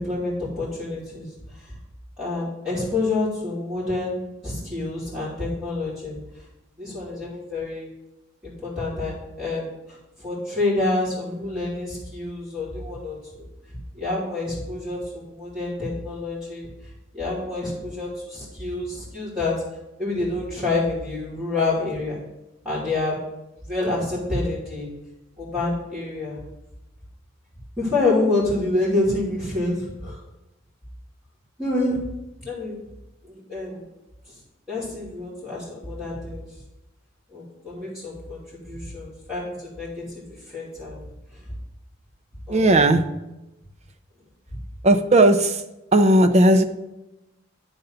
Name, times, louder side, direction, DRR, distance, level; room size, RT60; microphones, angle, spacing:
voice 1, 0.0-1.7 2.2-4.1 4.4-6.2 6.8-7.9 8.4-13.5 13.9-16.7 17.1-19.5 20.0-22.2 22.6-23.2 23.6-24.9 25.4-26.4 27.8-30.2 31.6-32.0 32.4-32.8 33.2-33.9 34.7-36.5 37.3-41.0 42.5-42.7, left 2 dB, 10° right, -12 dB, 2.9 m, -27 dB
voice 2, 42.5-43.0 44.8-45.6 45.9-46.6, right 1 dB, 35° right, 6 dB, 0.6 m, -16 dB
10.5 x 3.9 x 5.7 m, 0.95 s
head